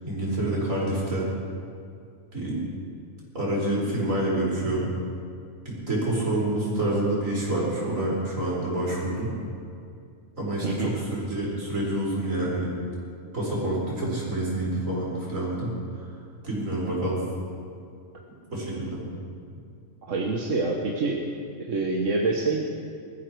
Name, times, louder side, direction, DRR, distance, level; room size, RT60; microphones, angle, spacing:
voice 1, 0.0-1.3 2.3-2.6 3.4-4.9 5.7-9.3 10.4-12.7 13.3-15.7 16.4-17.2 18.5-19.0, right 1 dB, 90° right, -5 dB, 5.2 m, -27 dB
voice 2, 10.6-10.9 20.1-21.2 21.6-22.6, right 3 dB, 70° right, -1 dB, 1.6 m, -26 dB
21.5 x 14.0 x 4.7 m, 2.4 s
omnidirectional pair, 1.3 m